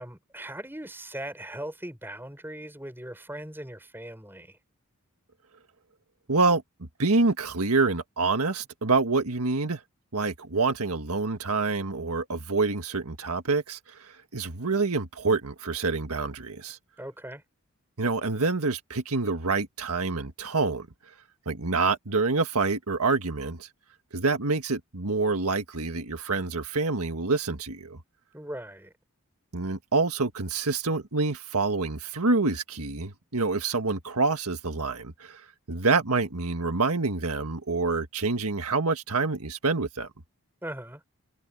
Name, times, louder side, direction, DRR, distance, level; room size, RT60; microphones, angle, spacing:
voice 1, 0.0-4.5 17.0-17.4 28.3-28.9 40.6-41.0, right 1 dB, 10° right, 5.9 m, -39 dB
voice 2, 6.3-6.6 7.0-9.8 10.1-13.8 14.3-16.8 18.0-20.9 21.4-23.7 24.1-28.0 29.5-35.4 35.7-40.1, right 3 dB, 85° right, 1.7 m, -27 dB
head